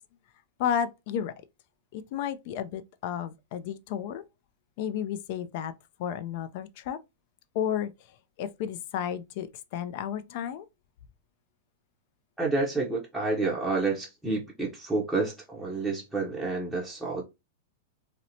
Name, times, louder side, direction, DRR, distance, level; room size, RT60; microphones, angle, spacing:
voice 1, 0.6-1.3 1.9-4.2 4.8-5.7 6.0-7.0 7.5-7.9 8.4-10.6, left 9 dB, 55° left, 0.3 m, -32 dB
voice 2, 12.4-17.2, right 3 dB, ahead, 0.6 m, -29 dB
2.8 x 2.0 x 2.6 m
supercardioid pair, 140°, 0 cm